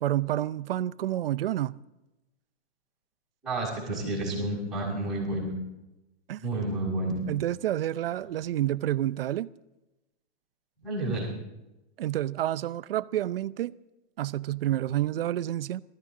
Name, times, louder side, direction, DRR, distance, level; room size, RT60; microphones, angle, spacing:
voice 1, 0.0-1.8 6.3-6.4 7.3-9.5 12.0-13.7 14.2-15.8, right 13 dB, 60° right, 0.6 m, -29 dB
voice 2, 3.4-5.6 6.4-7.2 10.8-11.3, right 1 dB, ahead, 6.1 m, -30 dB
22.0 x 14.0 x 3.7 m
hypercardioid pair, 175°, 33 cm